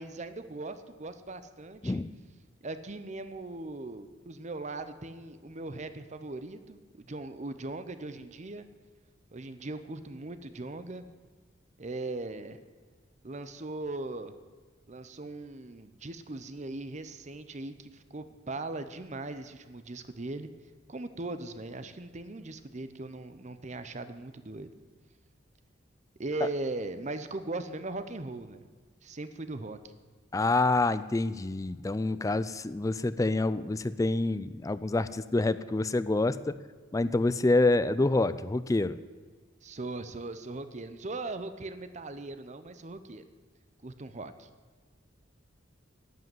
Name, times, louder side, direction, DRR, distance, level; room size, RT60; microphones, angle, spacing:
voice 1, 0.0-2.0 2.6-8.7 9.3-11.1 11.8-12.7 13.2-14.3 14.9-20.5 20.9-24.7 26.2-28.7 29.0-29.8 39.6-43.2 43.8-44.5, right 2 dB, 40° right, 11 dB, 0.7 m, -39 dB
voice 2, 30.3-36.5 36.9-39.0, left 2 dB, 15° left, 15 dB, 0.4 m, -27 dB
11.5 x 7.6 x 9.4 m, 1.5 s
head